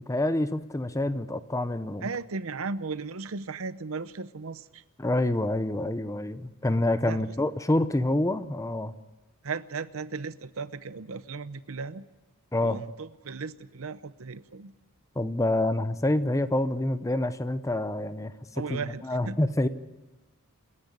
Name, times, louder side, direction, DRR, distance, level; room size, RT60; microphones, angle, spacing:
voice 1, 0.0-2.1 5.0-8.9 12.5-12.8 15.2-19.7, left 1 dB, 15° left, 12 dB, 0.7 m, -27 dB
voice 2, 2.0-4.8 7.0-7.3 9.4-12.0 12.6-14.7 18.5-19.4, right 4 dB, 70° right, 14 dB, 0.8 m, -36 dB
27.0 x 10.5 x 9.8 m, 1.1 s
head